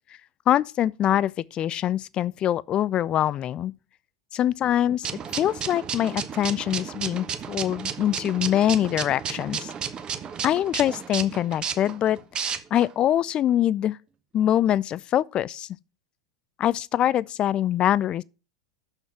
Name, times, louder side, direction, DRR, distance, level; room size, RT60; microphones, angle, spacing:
voice 1, 0.5-3.7 4.3-5.1 5.4-9.7 10.4-14.0 14.3-15.7 16.6-18.2, left 11 dB, 30° left, 0.3 m, -24 dB
sound 1, 5.0-12.9, right 7 dB, 30° right, 0.8 m, -33 dB
6.5 x 6.1 x 5.8 m
figure-of-eight pair, 90°, 3 cm